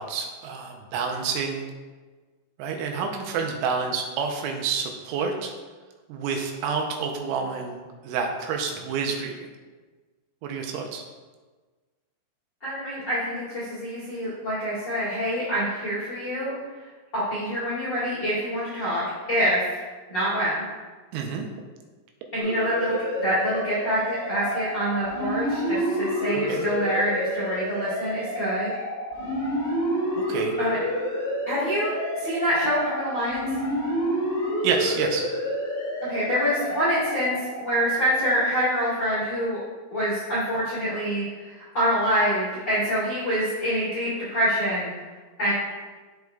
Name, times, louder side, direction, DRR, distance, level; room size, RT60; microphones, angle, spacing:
voice 1, 0.0-1.7 2.6-5.5 6.1-9.4 10.4-11.0 21.1-21.5 26.5-26.6 30.2-30.6 34.6-35.3, right 5 dB, 80° right, 2 dB, 2.9 m, -28 dB
voice 2, 12.6-16.5 17.1-19.8 20.1-20.7 22.3-28.7 30.6-30.8 31.5-33.5 36.0-39.6 39.9-44.9 45.4-45.5, equal, 65° left, -11 dB, 1.1 m, -26 dB
sound 1, 22.4-38.8, equal, 85° left, 0.7 m, -29 dB
12.5 x 4.6 x 2.3 m, 1.3 s
omnidirectional pair, 5.5 m